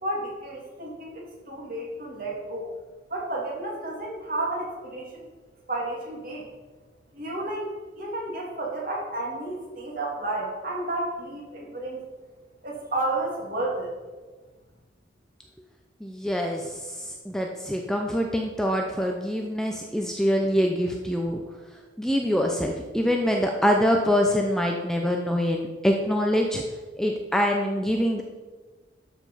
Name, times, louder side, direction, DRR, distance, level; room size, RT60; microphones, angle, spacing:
voice 1, 0.0-2.7 3.1-5.3 5.7-6.5 7.1-7.7 8.0-12.1 12.6-13.9, right 2 dB, 45° right, -3 dB, 2.7 m, -31 dB
voice 2, 16.0-21.4 22.0-26.6 27.0-28.2, equal, 5° left, 1 dB, 0.6 m, -25 dB
12.5 x 5.2 x 5.5 m, 1.3 s
head